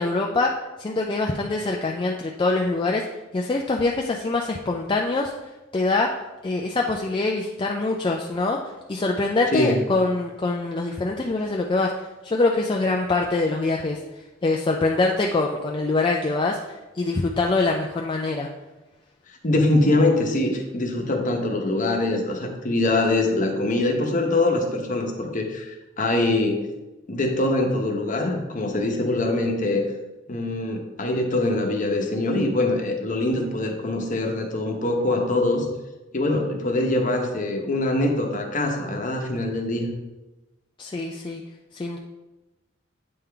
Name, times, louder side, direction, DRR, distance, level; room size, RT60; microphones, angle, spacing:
voice 1, 0.0-3.0 3.3-5.3 5.7-6.1 6.4-8.6 8.9-11.9 12.2-14.0 14.4-18.5 33.4-33.5 40.8-41.4 41.7-42.0, left 3 dB, 25° left, 0 dB, 0.4 m, -24 dB
voice 2, 9.5-9.8 19.4-26.7 27.1-29.8 30.3-35.7 36.1-39.9, left 2 dB, 45° left, 2 dB, 0.9 m, -23 dB
8.6 x 3.7 x 3.4 m, 1.1 s
head